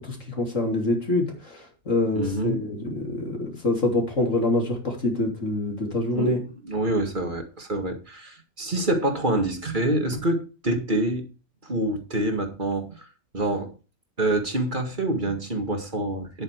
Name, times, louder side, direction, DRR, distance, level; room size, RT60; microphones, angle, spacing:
voice 1, 0.0-6.4, left 2 dB, 55° left, 3.4 m, -26 dB
voice 2, 2.1-2.6 6.1-11.2 11.6-13.1 13.3-13.7 14.2-16.4, right 1 dB, 35° right, 2.1 m, -26 dB
10.5 x 8.5 x 4.7 m
omnidirectional pair, 1.5 m